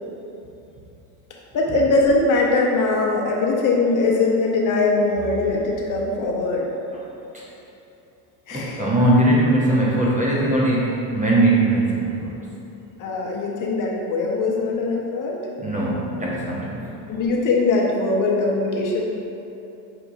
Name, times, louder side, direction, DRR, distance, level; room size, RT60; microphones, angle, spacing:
voice 1, 1.5-6.7 8.5-8.8 13.0-15.4 17.1-19.0, left 3 dB, 40° left, -1 dB, 0.7 m, -21 dB
voice 2, 8.5-12.3 15.6-16.9, right 1 dB, 15° right, -5 dB, 0.5 m, -20 dB
5.8 x 2.8 x 2.6 m, 2.9 s
hypercardioid pair, 85°, 49 cm